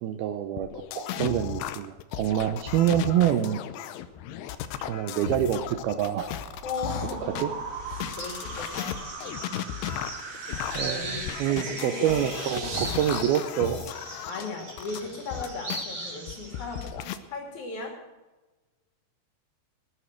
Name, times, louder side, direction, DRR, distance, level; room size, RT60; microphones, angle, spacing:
voice 1, 0.0-0.7 1.0-3.6 4.8-6.3 7.2-7.5 10.7-13.9, right 11 dB, 85° right, 7 dB, 2.2 m, -26 dB
sound 1, 0.6-7.4 7.9-15.8 16.3-17.2, left 11 dB, 80° left, 2.5 m, -36 dB
sound 2, 5.5-13.0, right 4 dB, 55° right, 3.6 m, -39 dB
voice 2, 6.6-7.6 7.9-9.0 10.8-12.3 12.6-13.0 14.3-17.9, left 3 dB, 45° left, 1 dB, 3.5 m, -37 dB
sound 3, 8.2-16.9, right 2 dB, 25° right, 3.5 m, -40 dB
19.0 x 8.3 x 6.2 m, 1.2 s
omnidirectional pair, 5.2 m